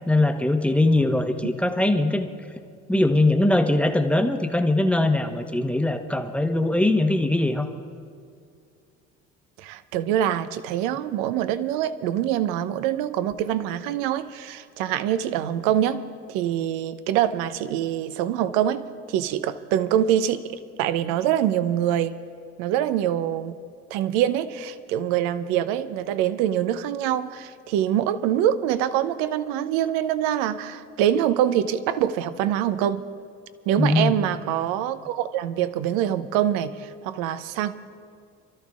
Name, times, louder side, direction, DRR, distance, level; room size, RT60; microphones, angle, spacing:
voice 1, 0.1-2.3 2.9-7.7 33.8-34.1, left 2 dB, 5° left, 6 dB, 1.0 m, -21 dB
voice 2, 9.6-16.0 16.3-22.2 22.6-23.6 23.9-33.0 33.7-37.7, right 11 dB, 70° right, 13 dB, 0.7 m, -24 dB
29.5 x 13.0 x 2.5 m, 2.2 s
hypercardioid pair, 65°, 36 cm